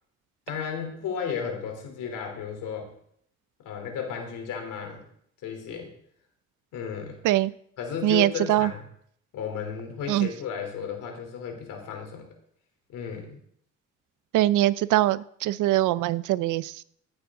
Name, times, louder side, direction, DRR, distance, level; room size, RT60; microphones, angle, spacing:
voice 1, 0.5-2.9 3.6-5.0 5.4-5.9 6.7-7.2 7.8-8.8 9.3-12.3 12.9-13.4, left 7 dB, 90° left, 3 dB, 3.4 m, -34 dB
voice 2, 8.0-8.7 10.1-10.3 14.3-16.8, right 15 dB, 90° right, 17 dB, 0.6 m, -23 dB
15.5 x 9.7 x 3.8 m, 0.66 s
cardioid pair, 90°, 30 cm